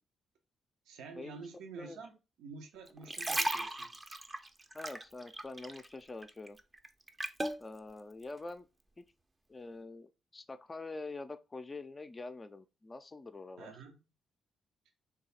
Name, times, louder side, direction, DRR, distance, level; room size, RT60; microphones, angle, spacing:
voice 1, 0.9-4.0 13.6-14.0, right 4 dB, 70° right, 0.5 m, -49 dB
sound 1, 2.9-5.9 6.2-7.6 8.2-8.4, right 1 dB, 25° right, 0.5 m, -36 dB
voice 2, 4.7-6.6 7.6-8.7 9.0-9.1 9.5-13.7, left 3 dB, 30° left, 0.4 m, -45 dB
3.1 x 2.3 x 4.1 m
hypercardioid pair, 45°, 0 cm